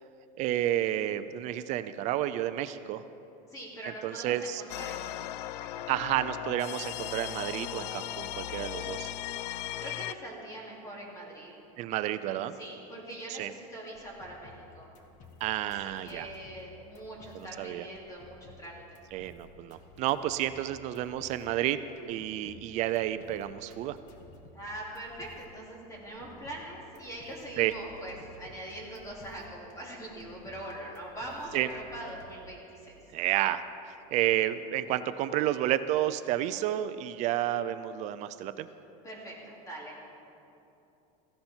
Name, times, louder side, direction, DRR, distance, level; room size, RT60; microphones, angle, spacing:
voice 1, 0.4-3.0 4.0-4.6 5.9-9.1 11.8-12.5 13.3-13.5 15.4-16.3 17.6-17.8 19.1-21.8 22.1-24.0 27.6-27.7 31.5-31.7 33.1-38.7, right 13 dB, 35° right, 12 dB, 0.4 m, -30 dB
voice 2, 3.5-5.9 9.8-11.5 12.5-14.9 15.6-19.0 24.5-33.0 39.0-40.1, right 1 dB, 15° left, -3 dB, 2.9 m, -43 dB
sound 1, 4.7-10.1, left 13 dB, 90° left, 0.4 m, -37 dB
sound 2, 13.8-32.4, left 3 dB, 40° left, 1.7 m, -54 dB
16.5 x 14.5 x 4.4 m, 2.8 s
supercardioid pair, 165°, 20 cm